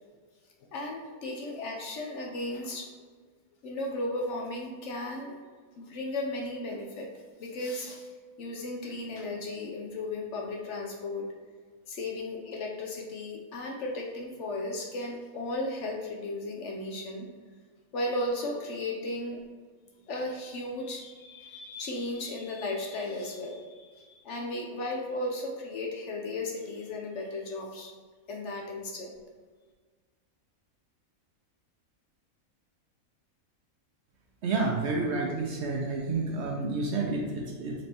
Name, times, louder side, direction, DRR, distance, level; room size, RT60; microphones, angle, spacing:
voice 1, 0.7-3.1 3.6-5.3 5.8-7.1 7.4-11.3 11.9-17.3 17.9-19.4 20.1-27.9 28.3-29.1, left 2 dB, 65° left, 0 dB, 0.8 m, -35 dB
voice 2, 34.4-37.7, right 3 dB, 65° right, -1 dB, 0.8 m, -29 dB
4.1 x 3.2 x 2.8 m, 1.5 s
omnidirectional pair, 1.5 m